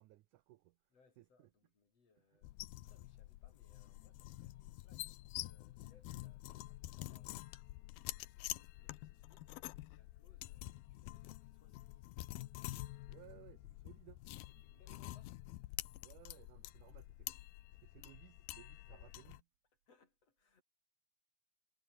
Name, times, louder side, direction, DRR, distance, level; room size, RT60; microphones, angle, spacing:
voice 1, 0.0-0.8 1.2-1.5 13.1-14.2 14.6-15.0 16.0-17.4 17.7-19.5, right 16 dB, 80° right, 1.8 m, -61 dB
voice 2, 0.9-2.5 2.9-7.6 8.3-12.2 14.3-15.4 19.9-20.6, left 4 dB, 40° left, 4.9 m, -73 dB
sound 1, 2.4-19.4, left 17 dB, 80° left, 2.7 m, -48 dB
omnidirectional pair, 4.3 m